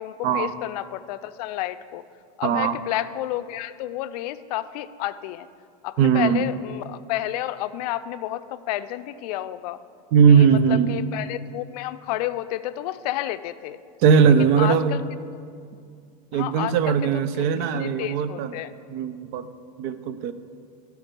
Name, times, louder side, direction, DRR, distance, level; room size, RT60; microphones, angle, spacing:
voice 1, 0.0-2.0 2.4-5.5 5.8-9.8 10.3-13.8 14.4-15.0 16.3-18.7, left 14 dB, 70° left, 12 dB, 0.4 m, -31 dB
voice 2, 2.4-2.8 6.0-6.4 10.1-10.9 14.0-15.0 16.3-18.5 18.9-19.5 19.8-20.3, right 7 dB, 55° right, 13 dB, 0.6 m, -19 dB
13.0 x 4.5 x 5.2 m, 2.2 s
supercardioid pair, 120°, 21 cm